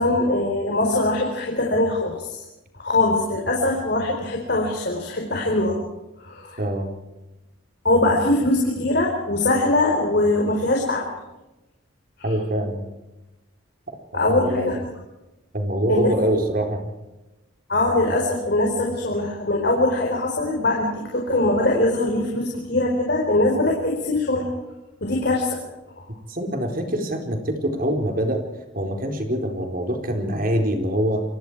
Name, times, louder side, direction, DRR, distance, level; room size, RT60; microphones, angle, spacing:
voice 1, 0.0-2.4 2.8-5.8 6.2-6.6 7.8-11.1 14.1-14.7 15.9-16.1 17.7-24.5 25.0-25.6 26.0-26.1, left 2 dB, 55° left, -1 dB, 4.5 m, -22 dB
voice 2, 6.6-6.9 12.2-12.8 14.1-14.7 15.5-16.8 26.3-28.4 28.7-31.2, equal, 45° right, 4 dB, 4.1 m, -24 dB
29.0 x 23.0 x 4.8 m, 1.0 s
head